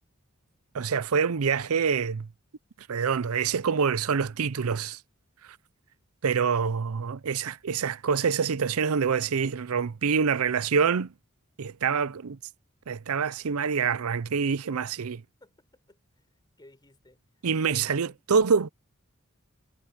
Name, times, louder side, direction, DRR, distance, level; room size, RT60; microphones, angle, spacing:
voice 1, 0.7-2.3 2.9-5.0 5.4-5.6 6.2-11.1 11.6-12.4 12.9-15.2 17.4-18.7, right 6 dB, 85° right, 0.6 m, -26 dB
voice 2, 15.4-16.3 16.6-17.2 17.7-18.2, left 1 dB, 20° left, 5.8 m, -55 dB
head